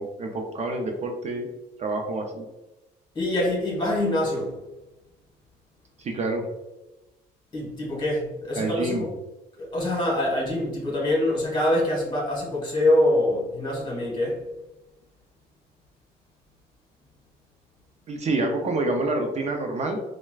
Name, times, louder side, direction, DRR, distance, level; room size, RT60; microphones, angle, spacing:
voice 1, 0.0-1.5 1.8-2.4 6.0-6.5 8.6-9.1 18.1-20.0, right 2 dB, 40° right, 3 dB, 0.5 m, -27 dB
voice 2, 3.1-4.5 7.5-9.1 9.6-14.4, left 1 dB, 25° left, -3 dB, 1.4 m, -24 dB
4.4 x 2.1 x 2.3 m, 0.99 s
cardioid pair, 110°, 17 cm